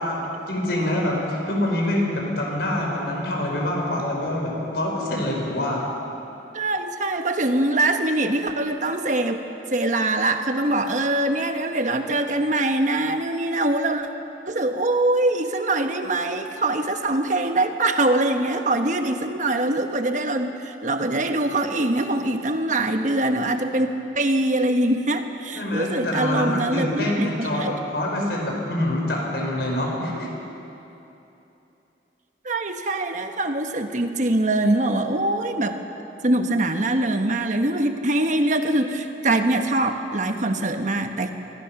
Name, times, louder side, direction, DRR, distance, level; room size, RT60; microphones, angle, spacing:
voice 1, 0.0-5.9 25.5-30.3, left 1 dB, 70° left, -1 dB, 5.2 m, -25 dB
voice 2, 6.5-9.4 9.7-14.1 14.5-27.7 32.4-35.8 36.2-41.3, right 2 dB, 45° right, 6 dB, 1.3 m, -23 dB
25.0 x 19.0 x 6.0 m, 2.9 s
head